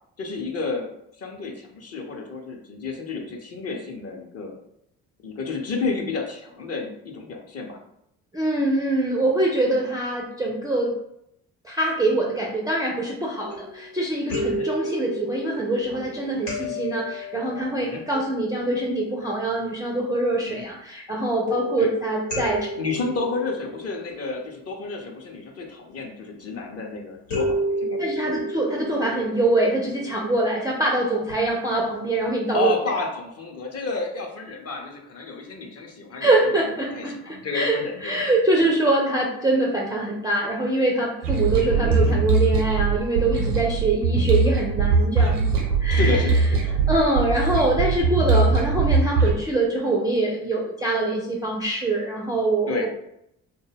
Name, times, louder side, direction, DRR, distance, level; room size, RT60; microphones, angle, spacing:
voice 1, 0.2-0.9 1.2-4.5 5.2-7.8 14.5-14.7 16.6-16.7 17.8-18.0 20.5-20.7 21.8-21.9 22.8-28.4 32.5-36.3 36.9-38.3 41.5-42.5 44.0-44.1 45.9-46.9 52.7-52.9, left 3 dB, 35° left, 1 dB, 0.6 m, -31 dB
voice 2, 8.3-10.9 11.6-22.7 28.0-32.7 36.2-37.1 37.5-37.8 38.0-46.2 46.9-52.9, right 2 dB, 10° right, -2 dB, 0.4 m, -24 dB
sound 1, 13.4-13.9 14.3-19.9 21.5-24.7 27.3-30.6 31.3-31.4 31.8-31.9, equal, 85° left, 1.1 m, -32 dB
sound 2, 41.2-49.3, right 4 dB, 80° right, 0.6 m, -21 dB
2.1 x 2.1 x 3.2 m, 0.76 s
figure-of-eight pair, 45°, 45 cm